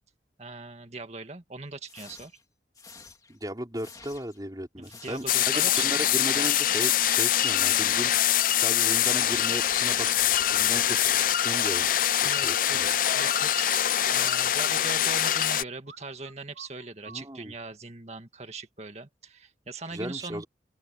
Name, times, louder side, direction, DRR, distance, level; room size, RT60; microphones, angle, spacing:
voice 1, 0.4-2.3 4.8-6.0 12.2-20.4, right 3 dB, 35° right, 2.0 m, -40 dB
sound 1, 1.9-2.4 2.7-3.4 3.7-4.4 4.8-5.4 5.8-6.4 6.7-7.4 7.7-8.4 8.7-11.9 12.8-13.1 14.1-14.9, left 3 dB, 20° left, 2.7 m, -50 dB
voice 2, 3.3-10.2 10.5-12.9 17.1-17.5 19.9-20.4, right 1 dB, 20° right, 4.4 m, -36 dB
sound 2, 5.3-15.6, left 11 dB, 50° left, 0.5 m, -24 dB
sound 3, 9.9-10.5 12.8-15.5 15.9-16.0 16.3-17.2, right 4 dB, 70° right, 3.5 m, -48 dB
open air
head